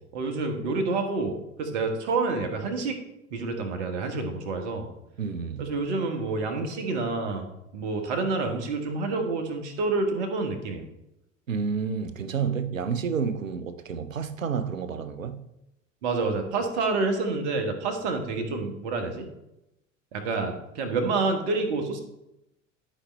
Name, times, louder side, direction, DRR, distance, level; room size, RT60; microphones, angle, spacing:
voice 1, 0.1-3.0 3.3-4.9 5.6-10.8 16.0-19.3 20.1-22.0, right 3 dB, 60° right, 1.5 m, -28 dB
voice 2, 5.2-5.7 11.5-15.4, right 6 dB, 85° right, 0.7 m, -30 dB
12.0 x 5.1 x 3.4 m
figure-of-eight pair, 70°, 39 cm